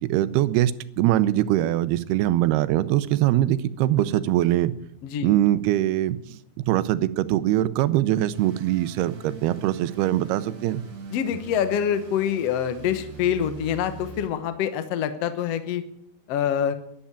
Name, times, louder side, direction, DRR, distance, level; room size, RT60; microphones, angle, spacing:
voice 1, 0.0-4.7 5.2-6.4 6.7-10.8, right 14 dB, 85° right, 15 dB, 2.8 m, -22 dB
voice 2, 5.0-5.3 11.1-15.8 16.3-16.7, left 9 dB, 70° left, 10 dB, 1.5 m, -25 dB
sound 1, 8.3-14.3, right 4 dB, 55° right, 7.0 m, -43 dB
13.0 x 11.5 x 8.8 m, 0.72 s
omnidirectional pair, 4.5 m